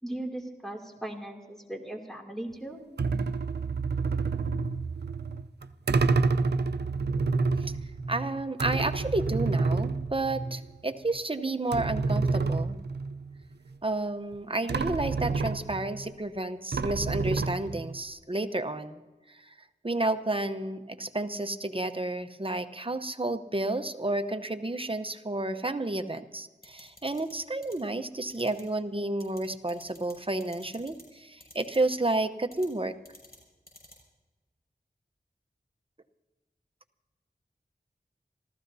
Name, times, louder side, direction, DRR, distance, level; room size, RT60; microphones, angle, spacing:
voice 1, 0.0-2.8, right 1 dB, ahead, 1 dB, 2.7 m, -38 dB
sound 1, 3.0-10.8 11.1-11.2 11.7-13.4 14.3-14.4 14.7-16.1 16.7-18.0, right 4 dB, 75° right, 0.5 m, -29 dB
voice 2, 8.1-12.8 13.8-19.0 19.8-32.9, right 2 dB, 30° right, 9 dB, 0.8 m, -31 dB
sound 2, 26.6-27.3 27.6-27.7 28.3-28.6 29.2-29.4 29.7-30.1 30.4-31.0 31.4-31.8 32.5-32.7 33.0-33.4 33.7-33.9, left 1 dB, 65° left, 6.4 m, -50 dB
27.5 x 15.0 x 2.7 m, 1.2 s
wide cardioid pair, 60°, 17 cm